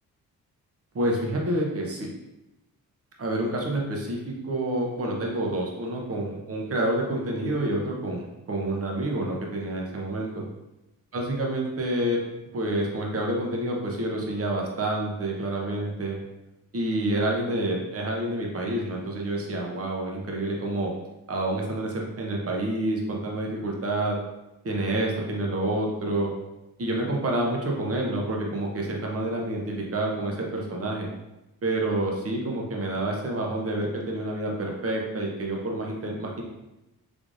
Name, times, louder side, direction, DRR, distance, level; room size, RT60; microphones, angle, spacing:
voice 1, 0.9-2.1 3.2-10.5 11.1-12.2 12.5-16.2 16.7-20.9 21.3-24.2 24.6-26.3 26.8-31.1 31.6-36.4, right 1 dB, 40° right, -1 dB, 0.9 m, -28 dB
3.4 x 3.3 x 2.6 m, 0.96 s
cardioid pair, 55°, 37 cm